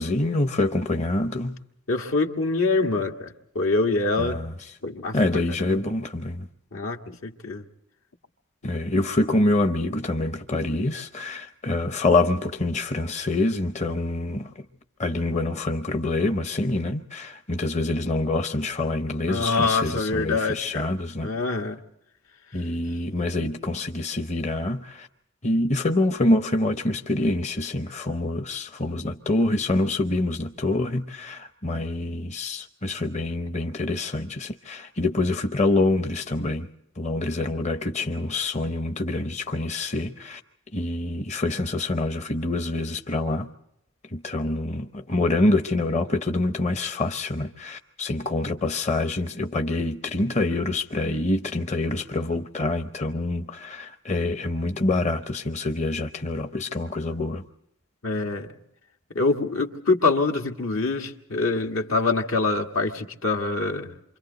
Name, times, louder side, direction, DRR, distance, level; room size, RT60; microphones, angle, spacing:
voice 1, 0.0-1.6 4.2-4.5 5.1-6.5 8.6-14.5 15.0-21.3 22.5-25.1 25.4-36.7 37.0-40.4 40.7-43.5 44.1-57.4, left 2 dB, 35° left, 0.7 m, -26 dB
voice 2, 1.9-4.4 4.8-5.2 5.7-5.8 6.7-7.6 19.3-20.9 21.2-21.8 58.0-58.5 59.1-63.9, left 3 dB, 80° left, 1.7 m, -25 dB
28.5 x 25.5 x 4.0 m
head